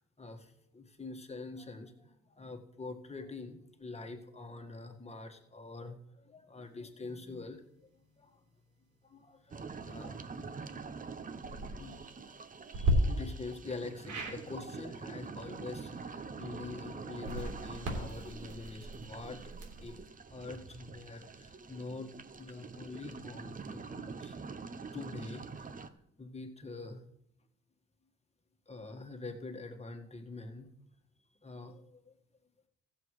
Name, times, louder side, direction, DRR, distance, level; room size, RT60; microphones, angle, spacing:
voice 1, 0.2-6.0 6.2-7.9 8.2-8.4 9.0-10.3 11.8-12.0 12.7-19.5 19.8-20.0 20.3-24.3 24.9-25.8 26.2-27.0 28.7-30.7 31.4-32.1, left 3 dB, 20° left, 5 dB, 1.6 m, -45 dB
sound 1, 9.5-25.9, right 4 dB, 25° right, 0.8 m, -46 dB
sound 2, 11.3-11.7 12.7-12.9 14.1-14.4 17.1-19.9, right 1 dB, 70° right, 3.1 m, -36 dB
15.0 x 7.2 x 4.9 m, 0.79 s
cardioid pair, 90°, 30 cm